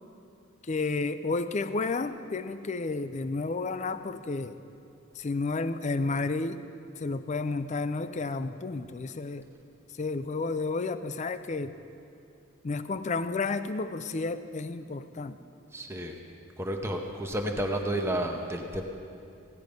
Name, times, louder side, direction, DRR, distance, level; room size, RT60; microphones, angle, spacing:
voice 1, 0.7-4.6 5.2-6.7 7.0-9.5 10.0-11.8 12.6-15.4, left 3 dB, 30° left, 12 dB, 0.4 m, -31 dB
voice 2, 15.7-16.1 16.6-18.8, right 1 dB, 10° right, 2 dB, 0.7 m, -31 dB
16.0 x 10.5 x 5.2 m, 2.7 s
head